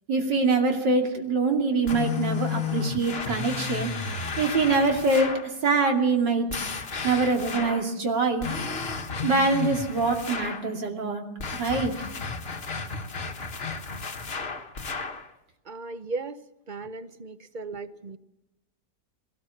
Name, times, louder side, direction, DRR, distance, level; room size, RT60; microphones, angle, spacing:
voice 1, 0.1-3.9 4.4-6.5 7.0-8.5 9.2-11.2 11.5-11.9, right 3 dB, 85° right, 3 dB, 3.4 m, -24 dB
sound 1, 1.9-5.5 6.5-7.9 8.4-10.7 11.4-15.3, left 5 dB, 40° left, 1.5 m, -33 dB
voice 2, 15.7-16.4 16.7-18.2, right 3 dB, 45° right, 13 dB, 0.6 m, -36 dB
22.0 x 19.0 x 7.1 m, 0.90 s
omnidirectional pair, 1.8 m